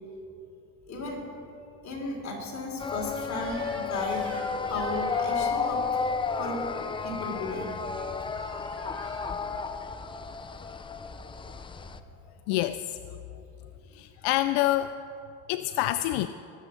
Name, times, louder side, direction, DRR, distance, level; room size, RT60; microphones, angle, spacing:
voice 1, 0.9-1.2 1.8-6.1 6.4-7.7, left 2 dB, 40° left, -1 dB, 3.4 m, -35 dB
sound 1, 2.8-12.0, left 5 dB, 15° left, 0.3 m, -32 dB
Crying sobbing / Screech, 3.3-5.5 7.4-7.7 8.3-9.3, right 3 dB, 30° right, 2.2 m, -47 dB
voice 2, 12.5-13.0 13.9-14.9 15.5-16.3, left 15 dB, 75° left, 11 dB, 0.5 m, -26 dB
20.5 x 7.4 x 5.0 m, 2.8 s
cardioid pair, 110°, 44 cm